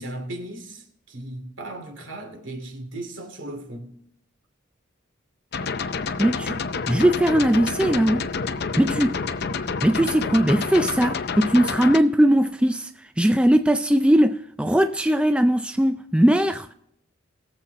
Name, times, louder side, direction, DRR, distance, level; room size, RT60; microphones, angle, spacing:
voice 1, 0.0-3.9, right 1 dB, 65° right, 2.5 m, -36 dB
sound 1, 5.5-12.0, left 5 dB, 50° left, 0.6 m, -28 dB
voice 2, 6.2-6.5 6.9-8.2 8.8-9.1 9.8-12.9 13.2-16.7, right 1 dB, 5° right, 0.3 m, -19 dB
21.0 x 7.5 x 3.9 m
head